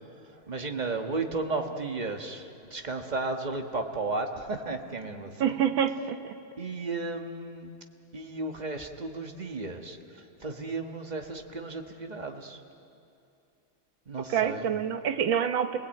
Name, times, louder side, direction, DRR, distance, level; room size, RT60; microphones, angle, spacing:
voice 1, 0.5-5.6 6.6-7.8 8.1-12.6 14.1-14.7, right 3 dB, 25° right, 4 dB, 1.3 m, -34 dB
voice 2, 5.4-6.2 14.3-15.8, right 8 dB, 65° right, 9 dB, 1.8 m, -26 dB
29.5 x 19.5 x 9.1 m, 2.6 s
omnidirectional pair, 2.4 m